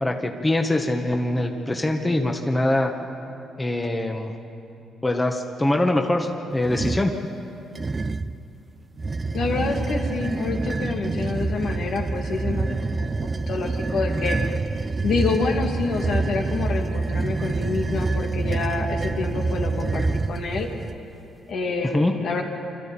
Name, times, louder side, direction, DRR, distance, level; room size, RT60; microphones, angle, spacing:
voice 1, 0.0-2.9 3.6-4.3 5.0-7.1 21.9-22.1, left 1 dB, 15° left, 3 dB, 1.6 m, -23 dB
sound 1, 6.6-7.1 7.7-8.4 9.0-21.0, right 3 dB, 30° right, 0.7 m, -26 dB
voice 2, 9.3-14.5 15.0-20.7 21.5-22.4, left 4 dB, 65° left, 1 dB, 2.7 m, -27 dB
24.5 x 13.5 x 8.9 m, 2.8 s
cardioid pair, 80°, 0 cm